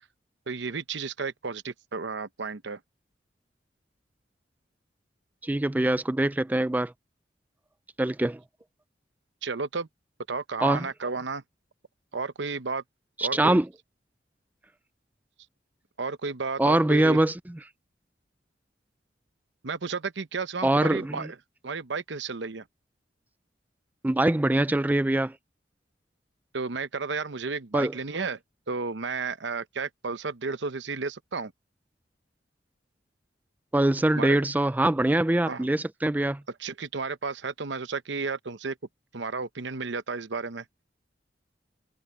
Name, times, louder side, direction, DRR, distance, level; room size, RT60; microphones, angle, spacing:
voice 1, 0.5-2.8 9.4-9.9 10.3-11.4 12.1-12.8 13.2-13.6 16.0-17.2 19.6-21.4 21.6-22.6 26.5-28.4 28.7-31.5 34.2-34.4 35.5-35.7 36.6-38.8 39.1-40.6, right 4 dB, 80° right, 0.9 m, -32 dB
voice 2, 5.4-6.9 8.0-8.4 10.6-10.9 13.2-13.7 16.6-17.4 20.6-21.3 24.0-25.4 27.7-27.9 33.7-36.4, right 1 dB, 10° right, 0.4 m, -23 dB
head